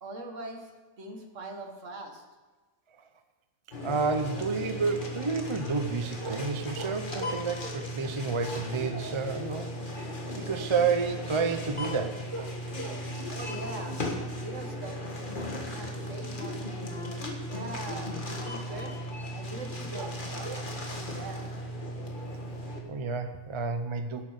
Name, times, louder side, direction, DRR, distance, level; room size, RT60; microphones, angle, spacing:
voice 1, 0.0-0.7 1.0-2.2 13.3-14.0 14.4-16.8 17.5-19.0 19.3-20.7 21.1-21.5, right 2 dB, 60° right, 4 dB, 1.8 m, -42 dB
sound 1, 3.7-22.8, equal, 35° left, 1.7 m, -36 dB
voice 2, 3.8-13.0 19.9-20.1 20.4-20.8 22.9-24.2, right 4 dB, 30° right, 8 dB, 0.6 m, -31 dB
11.5 x 8.2 x 6.5 m, 1.3 s
omnidirectional pair, 1.5 m